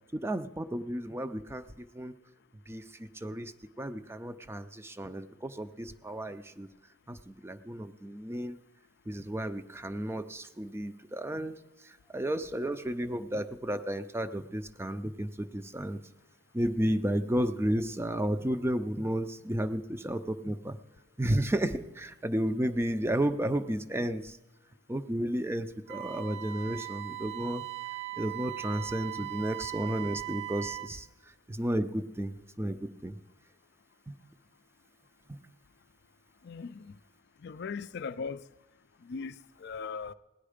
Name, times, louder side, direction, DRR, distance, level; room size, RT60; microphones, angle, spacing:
voice 1, 0.1-2.1 2.7-3.5 3.8-6.7 7.1-8.6 9.1-11.6 11.8-16.0 16.5-20.8 21.2-24.4 24.9-27.6 28.2-31.1 31.5-33.1 34.1-34.2 35.3-35.4, right 1 dB, 15° right, 0.5 m, -32 dB
Wind instrument woodwind instrument, 25.9-30.9, right 17 dB, 65° right, 0.7 m, -39 dB
voice 2, 36.4-37.0 37.4-38.4 39.0-40.1, left 5 dB, 60° left, 0.4 m, -39 dB
17.0 x 10.5 x 5.0 m
head